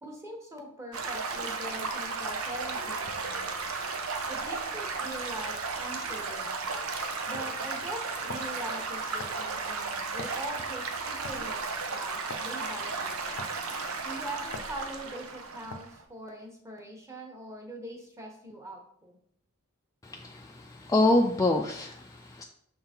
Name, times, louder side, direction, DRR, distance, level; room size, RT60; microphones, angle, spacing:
voice 1, 0.0-3.5 4.3-6.6 7.3-11.6 11.9-13.2 14.0-19.2, right 1 dB, 15° right, 2 dB, 1.1 m, -42 dB
Stream / Gurgling / Trickle dribble, 0.9-16.0, right 4 dB, 85° right, 0.8 m, -34 dB
sound 1, 7.3-7.5 8.3-8.6 9.2-9.5 10.2-10.5 11.2-11.5 12.3-12.5 13.4-13.7 14.5-14.7 15.7-16.0, left 3 dB, 80° left, 0.6 m, -42 dB
voice 2, 20.0-22.4, left 2 dB, 15° left, 1 dB, 0.4 m, -26 dB
6.6 x 3.8 x 4.4 m, 0.69 s
head